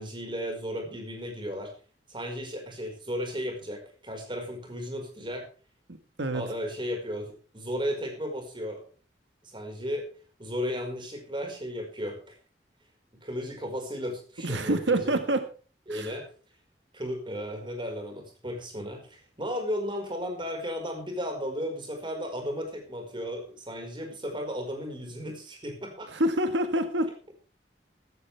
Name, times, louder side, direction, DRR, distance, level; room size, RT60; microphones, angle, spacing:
voice 1, 0.0-1.7 2.1-5.5 6.3-8.8 9.4-10.1 10.4-12.4 13.2-15.1 15.9-16.3 16.9-26.1, equal, 25° right, 3 dB, 5.0 m, -34 dB
voice 2, 5.9-6.5 14.4-15.5 15.9-16.2 26.1-27.1, right 1 dB, 85° right, 8 dB, 1.6 m, -27 dB
15.0 x 14.5 x 3.4 m, 0.37 s
head